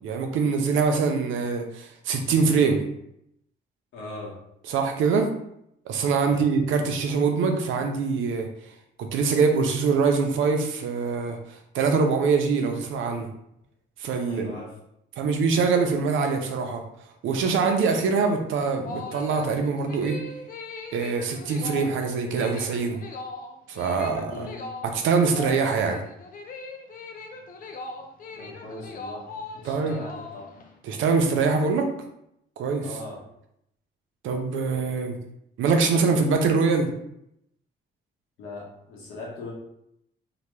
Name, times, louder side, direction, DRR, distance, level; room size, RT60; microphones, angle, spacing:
voice 1, 0.0-2.8 4.7-5.3 5.9-8.5 9.0-13.3 14.0-14.5 15.2-16.8 17.2-20.2 20.9-23.0 23.7-24.5 24.8-26.0 29.6-30.0 30.8-31.9 32.6-32.8 34.2-35.2 35.6-36.9, right 5 dB, 80° right, 4 dB, 0.5 m, -24 dB
voice 2, 3.9-4.4 6.3-6.4 14.2-14.7 24.3-24.7 28.4-29.3 29.6-30.4 32.8-33.2 38.4-39.5, left 2 dB, 85° left, -3 dB, 1.0 m, -39 dB
sound 1, 18.8-30.7, left 3 dB, 45° left, 0.5 m, -39 dB
2.9 x 2.1 x 3.0 m, 0.77 s
cardioid pair, 90°, 20 cm